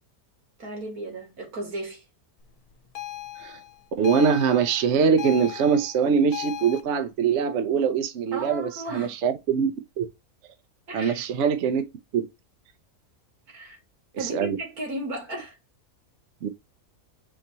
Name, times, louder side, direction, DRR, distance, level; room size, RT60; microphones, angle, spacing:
voice 1, 0.6-2.0 8.3-9.2 10.9-11.2 13.5-13.8 14.2-15.6, right 1 dB, 80° right, 2.4 m, -34 dB
sound 1, 2.9-6.8, left 13 dB, 85° left, 1.3 m, -37 dB
voice 2, 4.0-10.1 10.9-11.8 12.1-12.3 14.1-14.6 16.4-16.5, right 6 dB, 60° right, 0.8 m, -23 dB
4.4 x 2.9 x 4.0 m
omnidirectional pair, 1.6 m